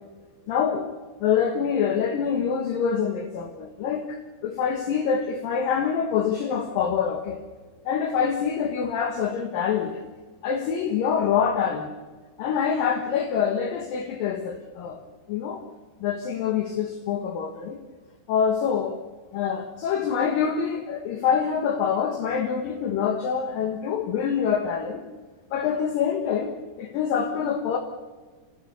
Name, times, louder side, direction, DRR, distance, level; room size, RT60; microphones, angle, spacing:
voice 1, 0.5-0.9 1.2-7.4 7.9-10.0 10.4-11.9 12.4-15.0 15.3-15.6 16.0-17.8 18.3-19.0 19.3-25.0 25.5-27.8, left 7 dB, 65° left, 5 dB, 2.6 m, -25 dB
26.5 x 16.5 x 6.8 m, 1.4 s
omnidirectional pair, 4.8 m